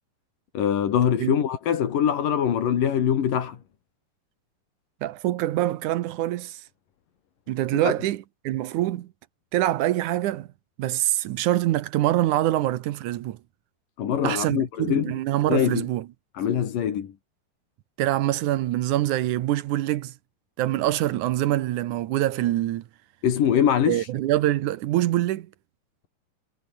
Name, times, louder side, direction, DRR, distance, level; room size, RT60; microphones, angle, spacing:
voice 1, 0.5-3.6 7.8-7.9 14.0-15.1 15.5-15.9 16.3-17.1 23.2-24.1, left 9 dB, 60° left, 3.7 m, -23 dB
voice 2, 5.0-6.6 7.5-9.1 9.5-10.5 10.8-13.4 14.2-16.1 18.0-20.1 20.6-22.8 23.9-25.5, right 14 dB, 70° right, 1.9 m, -25 dB
omnidirectional pair, 4.5 m